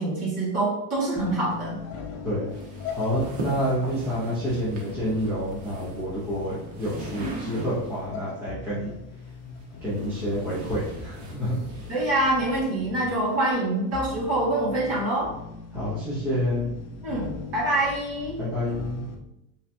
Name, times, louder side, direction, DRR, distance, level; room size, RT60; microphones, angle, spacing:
voice 1, 0.0-1.8 11.9-15.3 17.0-18.4, right 1 dB, 30° right, -5 dB, 1.6 m, -25 dB
sound 1, 1.2-19.1, left 4 dB, 40° left, 0.8 m, -40 dB
sound 2, 2.5-8.1 9.2-12.7, right 2 dB, 60° right, 1.3 m, -40 dB
voice 2, 2.9-8.9 9.8-11.6 15.7-16.7 18.4-19.1, equal, 5° right, -10 dB, 0.4 m, -28 dB
5.4 x 3.3 x 2.6 m, 0.86 s
supercardioid pair, 170°, 49 cm